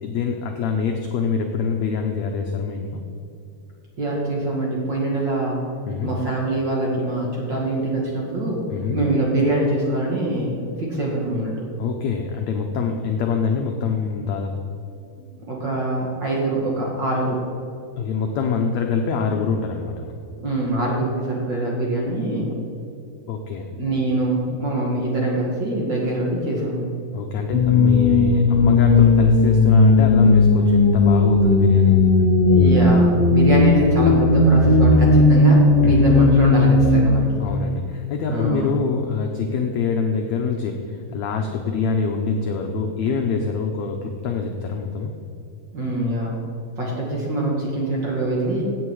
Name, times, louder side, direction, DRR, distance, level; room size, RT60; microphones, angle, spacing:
voice 1, 0.0-3.0 5.9-6.1 8.7-9.0 11.8-14.6 18.0-20.0 23.3-23.7 27.1-32.1 35.8-36.1 37.4-45.1, left 5 dB, 85° left, 3 dB, 1.5 m, -25 dB
voice 2, 4.0-5.6 6.0-8.6 8.9-11.7 15.5-17.4 20.4-22.5 23.8-26.9 32.4-37.3 38.3-38.7 45.7-46.3 46.8-48.6, right 2 dB, 40° right, -3 dB, 2.1 m, -24 dB
sound 1, 27.5-37.0, left 3 dB, 55° left, 2.2 m, -15 dB
16.0 x 7.9 x 4.8 m, 2.5 s
omnidirectional pair, 4.3 m